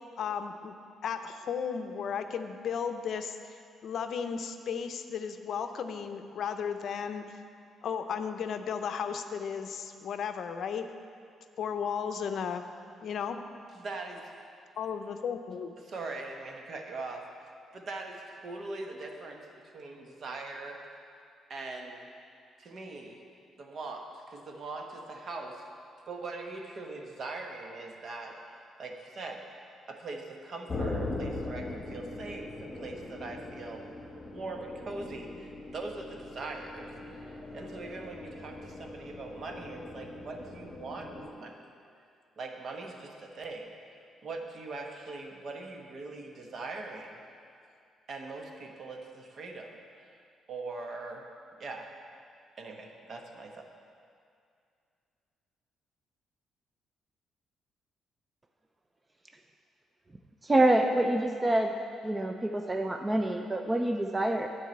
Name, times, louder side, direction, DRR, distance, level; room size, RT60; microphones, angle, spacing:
voice 1, 0.2-0.7 1.0-7.2 7.8-10.9 11.6-12.6 13.0-13.4 14.8-15.8, left 7 dB, 65° left, 8 dB, 0.5 m, -34 dB
voice 2, 13.7-14.3 15.8-19.5 19.7-20.8 21.5-22.1 22.6-23.2 23.6-25.6 26.1-28.4 28.8-29.5 29.9-33.8 34.3-41.6 42.4-43.8 44.2-47.2 48.1-50.2 50.5-51.3 51.6-51.9 52.6-53.6, right 3 dB, 55° right, 2 dB, 1.1 m, -41 dB
sound 1, 30.7-41.3, left 2 dB, 25° left, 1.4 m, -40 dB
voice 3, 60.4-61.8 62.0-64.5, right 1 dB, 20° right, 4 dB, 0.5 m, -26 dB
9.2 x 4.8 x 7.8 m, 2.4 s
cardioid pair, 90°, 0 cm